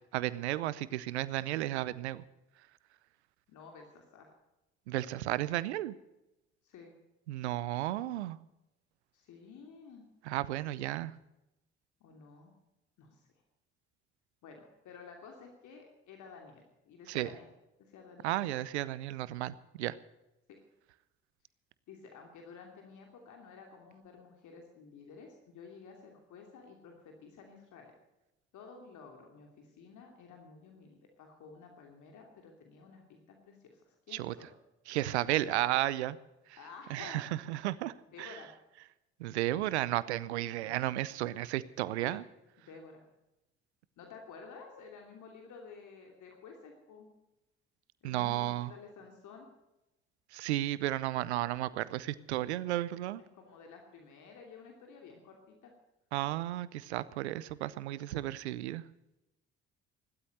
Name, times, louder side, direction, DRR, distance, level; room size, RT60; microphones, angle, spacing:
voice 1, 0.1-2.2 4.9-6.0 7.3-8.4 10.3-11.1 17.1-17.3 18.2-20.0 34.1-34.3 34.9-36.2 36.9-37.9 38.2-38.4 39.2-42.2 48.0-48.7 50.3-53.2 56.1-58.8, right 15 dB, 85° right, 18 dB, 0.7 m, -33 dB
voice 2, 3.5-4.3 6.6-6.9 9.1-10.0 12.0-12.5 13.0-13.2 14.4-17.5 17.8-18.6 20.5-20.6 21.9-27.9 28.5-34.5 35.3-35.8 36.6-37.2 38.1-38.5 40.5-40.9 42.0-42.2 42.6-43.0 44.0-47.1 48.0-49.5 53.2-55.7 58.1-58.3, left 5 dB, 65° left, 2 dB, 2.9 m, -52 dB
16.0 x 12.5 x 6.5 m, 0.94 s
hypercardioid pair, 50°, 33 cm